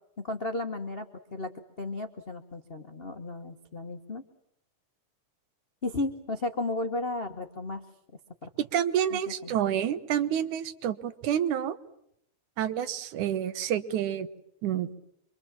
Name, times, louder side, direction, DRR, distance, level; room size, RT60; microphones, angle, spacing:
voice 1, 0.2-4.2 5.8-7.8 8.4-8.5 9.1-9.5, left 2 dB, 80° left, 5 dB, 0.5 m, -34 dB
voice 2, 8.6-11.8 12.6-14.3 14.6-14.9, right 10 dB, 85° right, 12 dB, 2.6 m, -28 dB
26.0 x 24.5 x 7.4 m, 0.77 s
omnidirectional pair, 3.4 m